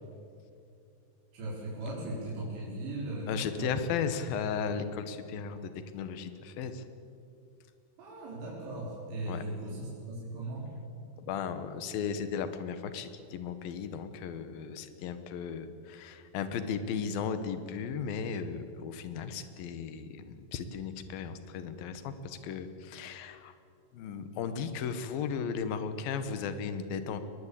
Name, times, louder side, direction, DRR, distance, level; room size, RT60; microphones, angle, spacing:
voice 1, 1.3-3.8 8.0-10.7, right 2 dB, 80° right, -5 dB, 6.5 m, -38 dB
voice 2, 3.3-5.6 5.9-6.8 9.3-9.4 11.2-23.5 23.9-27.2, left 6 dB, 65° left, 10 dB, 2.9 m, -35 dB
22.5 x 21.5 x 8.5 m, 2.5 s
omnidirectional pair, 4.9 m